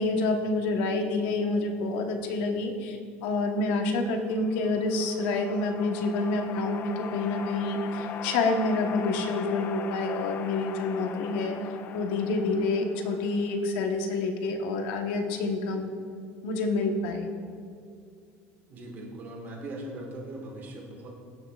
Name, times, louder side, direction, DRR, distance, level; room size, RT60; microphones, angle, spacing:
voice 1, 0.0-11.6 11.9-15.9 16.4-17.3, left 3 dB, 85° left, 4 dB, 1.1 m, -28 dB
sound 1, 4.3-13.8, left 7 dB, 40° left, 0.4 m, -40 dB
voice 2, 18.7-21.1, right 1 dB, 35° right, 0 dB, 1.7 m, -40 dB
16.0 x 7.3 x 2.4 m, 2.3 s
cardioid pair, 170°, 5 cm